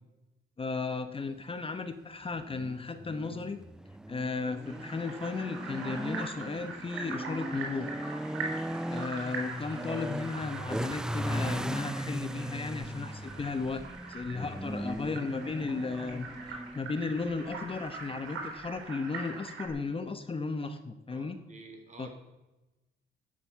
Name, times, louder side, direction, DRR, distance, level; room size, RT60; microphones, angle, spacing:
voice 1, 0.6-3.6 4.1-7.9 8.9-13.8 14.1-21.4 22.0-22.1, left 4 dB, 25° left, 9 dB, 0.9 m, -35 dB
sound 1, 2.3-18.9, right 1 dB, 5° right, 0.4 m, -39 dB
sound 2, 4.6-19.7, right 4 dB, 90° right, 3.9 m, -43 dB
voice 2, 21.1-22.1, right 3 dB, 35° right, 4 dB, 3.6 m, -50 dB
10.5 x 10.5 x 8.4 m, 1.1 s
cardioid pair, 90°, 20 cm